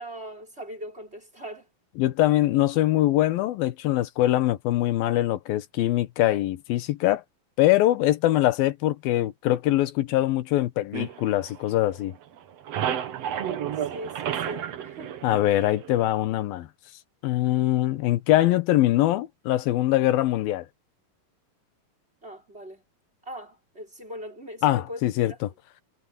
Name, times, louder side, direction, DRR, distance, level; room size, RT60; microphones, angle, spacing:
voice 1, 0.0-1.7 13.9-15.2 22.2-22.8 23.2-25.4, equal, 15° right, 5.9 m, -40 dB
voice 2, 2.0-7.2 7.6-12.1 15.2-16.7 17.2-20.7 24.6-25.3, left 15 dB, 90° left, 2.9 m, -23 dB
sound 1, 10.9-12.1 12.4-16.1, right 9 dB, 55° right, 2.0 m, -32 dB
omnidirectional pair, 4.1 m